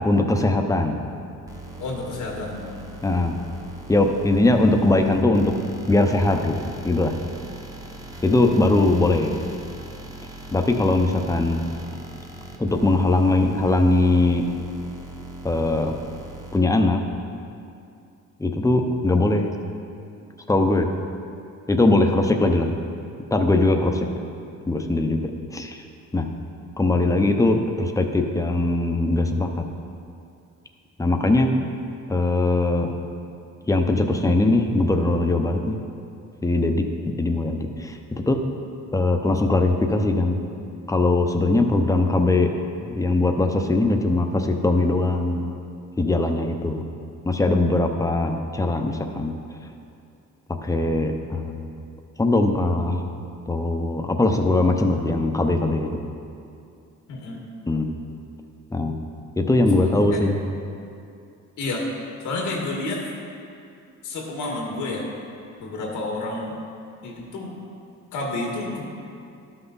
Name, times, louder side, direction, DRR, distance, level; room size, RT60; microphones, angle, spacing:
voice 1, 0.0-1.0 3.0-3.4 3.9-5.5 5.9-7.1 8.2-9.4 10.5-11.6 12.6-14.4 15.4-15.9 16.5-17.0 18.4-19.5 20.5-20.9 21.7-22.7 23.3-24.1 24.7-25.2 25.5-25.8 26.1-26.3 26.8-29.5 31.0-31.5 32.1-32.9 33.7-35.8 36.4-36.8 37.2-38.0 38.3-38.4 38.9-40.4 40.9-42.5 42.8-45.5 46.0-46.8 47.2-49.3 50.6-51.7 52.2-53.0 53.5-56.0 57.7-57.9 58.7-59.0 59.4-60.4, left 2 dB, 10° left, 4 dB, 0.8 m, -20 dB
sound 1, 1.5-16.6, right 1 dB, 10° right, 1.1 m, -40 dB
voice 2, 1.8-2.6 57.1-57.4 59.7-60.2 61.6-61.9 62.2-63.0 64.0-65.1 65.6-66.5 67.0-67.6 68.1-68.8, left 2 dB, 85° left, -1 dB, 1.8 m, -30 dB
12.0 x 5.8 x 4.1 m, 2.5 s
cardioid pair, 90°, 30 cm